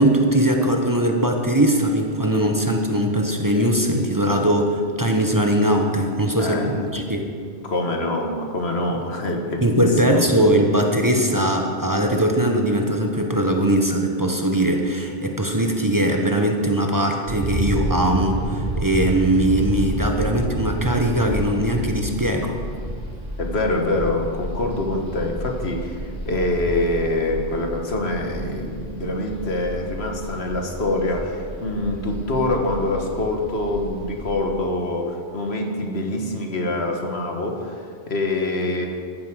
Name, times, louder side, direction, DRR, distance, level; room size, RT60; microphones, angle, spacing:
voice 1, 0.0-7.3 9.6-22.6, right 1 dB, 20° right, 2 dB, 1.2 m, -20 dB
voice 2, 6.4-6.9 7.6-10.2 23.4-38.9, left 2 dB, 80° left, 2 dB, 1.8 m, -25 dB
sound 1, 17.3-34.3, right 1 dB, 40° right, 4.6 m, -30 dB
14.5 x 9.5 x 6.3 m, 2.2 s
omnidirectional pair, 1.1 m